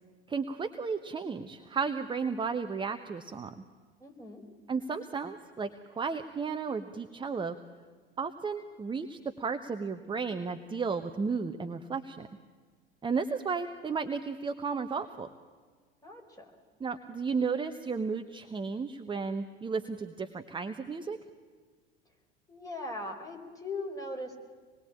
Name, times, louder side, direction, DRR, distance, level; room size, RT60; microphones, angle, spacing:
voice 1, 0.3-3.5 4.7-7.6 8.2-12.3 13.0-15.3 16.8-21.2, right 5 dB, 15° right, 7 dB, 1.1 m, -33 dB
voice 2, 4.0-4.4 16.0-16.5 22.5-24.4, left 2 dB, 10° left, 2 dB, 4.6 m, -39 dB
26.0 x 21.0 x 8.8 m, 1.5 s
figure-of-eight pair, 75°, 30 cm